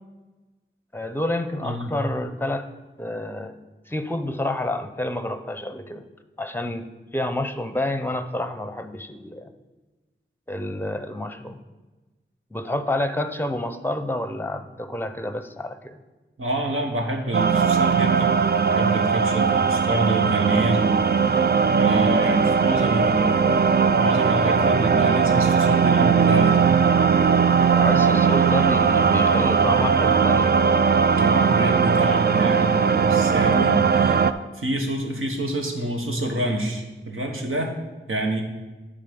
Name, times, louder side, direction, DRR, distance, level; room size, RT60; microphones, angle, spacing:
voice 1, 0.9-2.7 3.0-3.5 3.9-6.0 6.4-6.9 7.1-9.5 10.5-11.6 12.5-16.0 27.7-30.5, left 1 dB, 10° left, 9 dB, 0.7 m, -28 dB
voice 2, 1.6-1.9 16.4-18.2 18.6-21.0 21.3-21.4 21.8-23.7 24.0-26.8 31.1-37.7 38.1-38.4, right 1 dB, 85° right, 1 dB, 1.3 m, -27 dB
sound 1, 17.3-34.3, right 6 dB, 50° right, 0.4 m, -19 dB
10.0 x 3.9 x 7.0 m, 1.2 s
wide cardioid pair, 65°, 21 cm